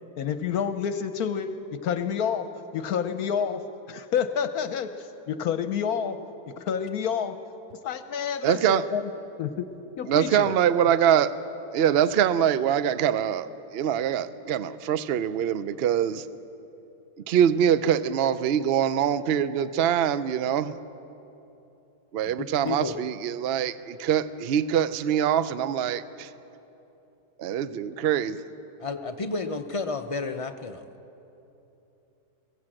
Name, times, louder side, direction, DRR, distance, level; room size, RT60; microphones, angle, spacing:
voice 1, 0.2-2.5 2.7-3.6 3.9-6.2 6.5-7.4 7.8-9.0 9.4-9.7 10.0-10.5, left 7 dB, 70° left, 10 dB, 1.2 m, -29 dB
voice 2, 8.4-8.9 10.1-11.4 11.7-16.3 17.3-20.8 22.1-26.3 27.4-28.4, right 9 dB, 60° right, 14 dB, 0.6 m, -24 dB
voice 3, 22.4-23.0 28.8-30.8, left 3 dB, 55° left, 6 dB, 0.3 m, -31 dB
22.0 x 16.5 x 7.7 m, 3.0 s
omnidirectional pair, 1.7 m